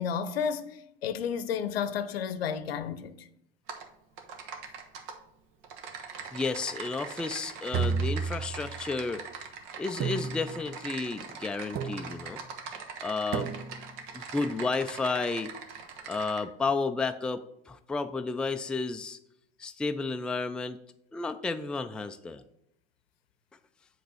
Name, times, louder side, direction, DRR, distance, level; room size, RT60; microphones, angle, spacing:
voice 1, 0.0-3.2, left 7 dB, 80° left, 0.7 m, -32 dB
Typing, 3.7-3.9 4.2-5.1 5.6-16.4, right 6 dB, 60° right, 1.2 m, -42 dB
voice 2, 6.3-9.2 9.8-12.4 13.0-13.5 14.1-15.5 16.1-19.2 19.6-20.8 21.1-22.4, left 3 dB, 5° left, 0.3 m, -32 dB
sound 1, 7.7-8.9 10.0-10.8 11.7-12.4 13.3-14.0, right 5 dB, 30° right, 0.6 m, -32 dB
7.8 x 3.2 x 6.2 m
hypercardioid pair, 85°, 30 cm